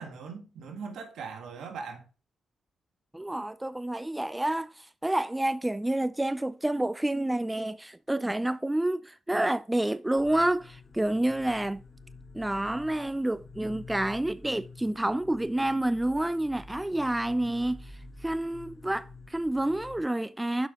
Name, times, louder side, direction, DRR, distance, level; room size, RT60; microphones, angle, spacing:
voice 1, 0.0-2.0, right 5 dB, 75° right, 1.7 m, -40 dB
voice 2, 3.1-11.8 12.3-20.7, right 1 dB, 10° right, 0.3 m, -29 dB
sound 1, 10.2-20.0, left 3 dB, 35° left, 2.1 m, -49 dB
6.8 x 5.5 x 4.2 m
supercardioid pair, 60°, 0 cm